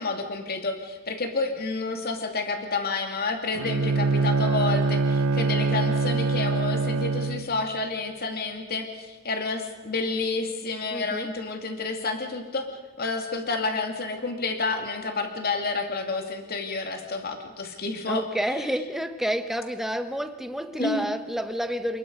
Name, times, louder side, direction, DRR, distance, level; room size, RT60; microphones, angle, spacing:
voice 1, 0.0-12.7 13.0-18.2 20.8-21.1, left 3 dB, 50° left, 4 dB, 2.5 m, -29 dB
Bowed string instrument, 3.5-7.6, right 3 dB, 75° right, 0.7 m, -24 dB
voice 2, 10.9-11.3 18.1-22.0, equal, ahead, 8 dB, 1.2 m, -29 dB
28.5 x 20.5 x 5.4 m, 1.2 s
head